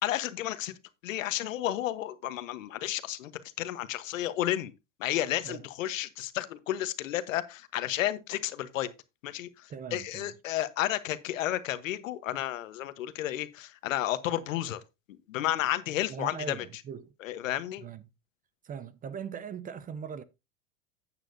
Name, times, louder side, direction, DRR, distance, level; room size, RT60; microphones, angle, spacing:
voice 1, 0.0-0.7 1.0-3.3 3.6-4.7 5.0-8.9 9.2-14.8 15.3-16.6 17.2-17.8, left 13 dB, 80° left, 1.2 m, -32 dB
voice 2, 9.7-10.3 16.1-17.1 17.8-18.1 18.6-20.2, right 7 dB, 20° right, 0.6 m, -40 dB
10.5 x 8.9 x 2.6 m
hypercardioid pair, 115°, 38 cm